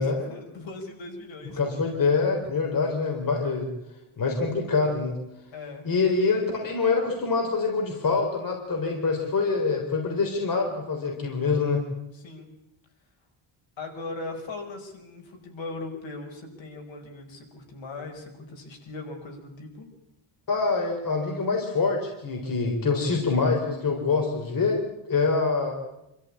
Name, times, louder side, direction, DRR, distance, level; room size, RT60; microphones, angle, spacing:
voice 1, 0.0-1.6 2.5-2.6 5.5-5.9 12.1-12.5 13.8-19.9, left 3 dB, 65° left, 3 dB, 5.4 m, -39 dB
voice 2, 1.6-3.7 4.2-5.2 5.8-11.8 20.5-24.8 25.1-25.7, left 4 dB, 40° left, 1 dB, 4.1 m, -25 dB
26.5 x 14.0 x 8.7 m, 0.87 s
cardioid pair, 150°, 50 cm